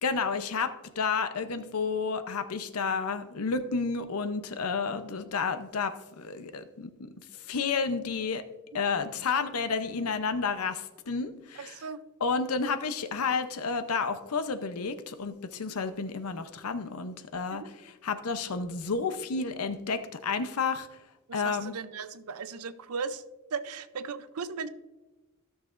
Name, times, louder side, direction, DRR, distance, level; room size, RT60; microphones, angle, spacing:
voice 1, 0.0-7.1 7.5-8.4 8.7-11.8 12.2-17.6 18.0-20.9 21.3-21.7, left 5 dB, 85° left, 10 dB, 0.7 m, -31 dB
voice 2, 11.6-12.0 17.5-17.7 21.3-23.2 23.5-24.7, right 5 dB, 85° right, 13 dB, 0.5 m, -37 dB
16.0 x 6.4 x 2.5 m, 1.1 s
head